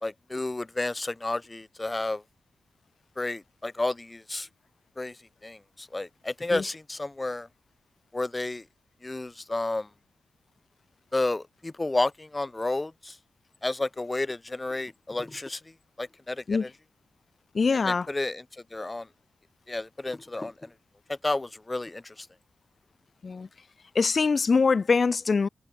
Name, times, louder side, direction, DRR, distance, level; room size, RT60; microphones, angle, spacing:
voice 1, 0.0-2.2 3.2-4.5 5.0-5.2 5.4-7.5 8.1-8.6 9.0-9.9 11.1-13.2 13.6-16.7 17.7-18.4 18.7-19.1 19.7-20.7 21.1-22.3, left 2 dB, 15° left, 2.6 m, -31 dB
voice 2, 17.5-18.1 23.2-23.5 24.0-25.5, left 4 dB, 40° left, 0.4 m, -23 dB
wide cardioid pair, 140°, 0 cm